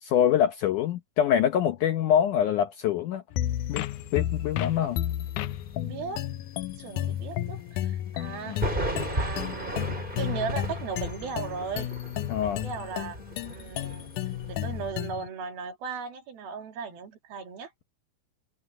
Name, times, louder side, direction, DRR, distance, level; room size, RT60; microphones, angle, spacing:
voice 1, 0.0-3.2 3.7-5.0 8.5-8.7 12.3-12.6, left 9 dB, 75° left, 1.9 m, -25 dB
sound 1, 3.3-15.3, left 12 dB, 90° left, 1.7 m, -33 dB
sound 2, 3.4-5.1 5.4-5.8 6.1-6.2 6.6-6.7 8.2-14.9, right 1 dB, 10° right, 4.4 m, -36 dB
voice 2, 5.8-6.3 6.8-8.6 9.1-11.9 12.4-13.2 13.5-14.1 14.5-17.7, right 6 dB, 70° right, 4.4 m, -37 dB
omnidirectional pair, 4.6 m